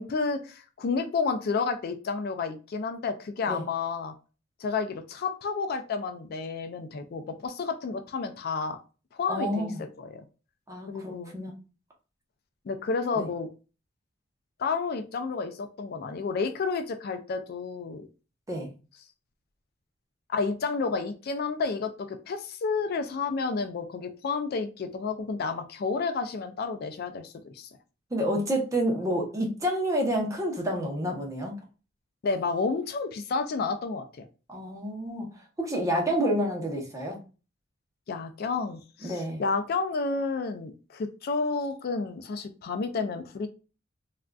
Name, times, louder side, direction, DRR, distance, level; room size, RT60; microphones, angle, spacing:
voice 1, 0.0-4.1 4.6-8.8 9.1-9.7 10.0-10.2 10.9-11.3 12.7-13.5 14.6-18.1 20.3-27.7 32.2-34.3 38.1-43.5, left 4 dB, 55° left, 7 dB, 0.4 m, -31 dB
voice 2, 9.3-9.8 10.7-11.5 13.2-13.3 18.5-18.7 28.1-31.5 34.5-35.3 35.6-37.2 39.0-39.4, equal, 15° right, 0 dB, 0.8 m, -29 dB
3.5 x 2.4 x 2.2 m, 0.33 s
head